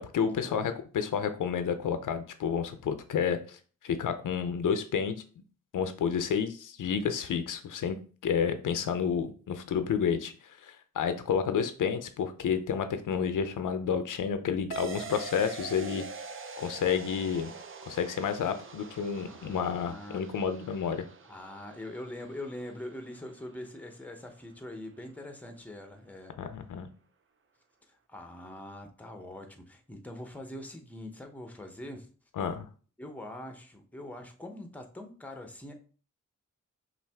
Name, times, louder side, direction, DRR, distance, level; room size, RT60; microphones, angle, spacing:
voice 1, 0.1-5.1 5.7-8.0 8.2-16.0 16.6-17.5 17.9-21.1 26.4-26.9 32.4-32.7, left 7 dB, 85° left, 9 dB, 0.6 m, -30 dB
sound 1, 14.7-23.7, right 5 dB, 45° right, 0.6 m, -45 dB
voice 2, 19.2-20.2 21.3-26.3 27.9-32.1 33.0-35.7, left 1 dB, 5° left, 5 dB, 0.7 m, -43 dB
5.7 x 2.5 x 3.5 m, 0.39 s
wide cardioid pair, 105°, 31 cm